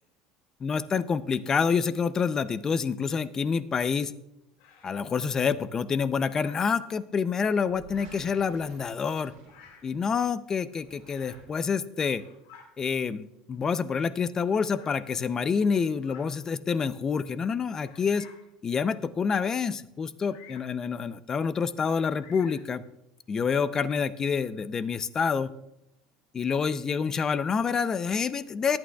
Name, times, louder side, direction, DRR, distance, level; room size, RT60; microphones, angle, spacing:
voice 1, 0.6-4.1 4.8-9.3 9.8-12.2 12.8-18.3 18.6-22.8 23.3-25.5 26.3-28.8, left 6 dB, 25° left, 15 dB, 0.5 m, -27 dB
Bird vocalization bird call bird song, 4.6-5.3 6.3-6.8 7.8-8.4 9.4-9.9 11.0-11.5 12.0-12.7 13.5-13.6 14.7-15.0 15.9-16.3 16.9-17.0 17.8-18.5 20.2-20.8 21.8-22.7, left 7 dB, 75° left, 3.3 m, -52 dB
sound 1, 7.6-10.2 10.7-11.8, right 6 dB, 60° right, 3.1 m, -53 dB
22.0 x 8.7 x 2.3 m, 0.85 s
supercardioid pair, 140°, 2 cm